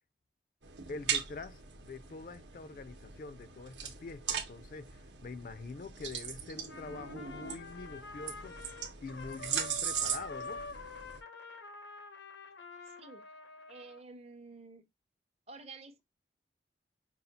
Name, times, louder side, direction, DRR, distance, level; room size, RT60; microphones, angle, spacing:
sound 1, 0.6-11.2, right 8 dB, 90° right, 0.9 m, -40 dB
voice 1, 0.9-8.6 9.0-10.6, left 3 dB, 50° left, 0.3 m, -45 dB
Trumpet, 6.7-14.0, left 3 dB, 85° left, 0.7 m, -46 dB
voice 2, 12.9-13.2 13.7-14.9 15.5-16.0, right 3 dB, 35° right, 0.6 m, -50 dB
5.4 x 2.3 x 2.7 m
head